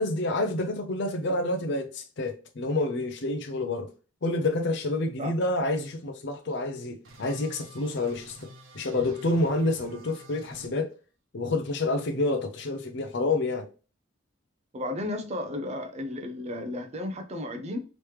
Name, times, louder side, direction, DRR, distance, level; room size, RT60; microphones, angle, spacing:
voice 1, 0.0-3.9 4.2-8.4 8.7-10.9 11.3-13.7, left 2 dB, 55° left, 0.5 m, -28 dB
sound 1, 7.0-10.7, right 1 dB, 70° right, 1.0 m, -48 dB
voice 2, 14.7-17.8, left 1 dB, 30° right, 0.5 m, -33 dB
3.1 x 3.1 x 3.2 m
head